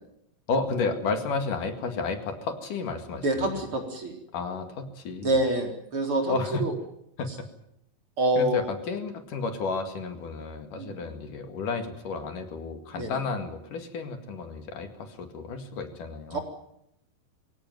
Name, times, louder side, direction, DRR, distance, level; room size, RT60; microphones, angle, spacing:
voice 1, 0.5-3.6 4.3-5.4 6.3-6.7 7.2-7.3 8.4-16.4, left 4 dB, 70° left, 6 dB, 3.6 m, -32 dB
voice 2, 3.2-4.1 5.2-6.3 6.6-6.7 8.2-8.7 10.8-11.0 12.9-13.1 16.3-16.4, right 1 dB, 40° right, 2 dB, 4.6 m, -26 dB
23.5 x 17.5 x 9.4 m, 0.78 s
omnidirectional pair, 4.0 m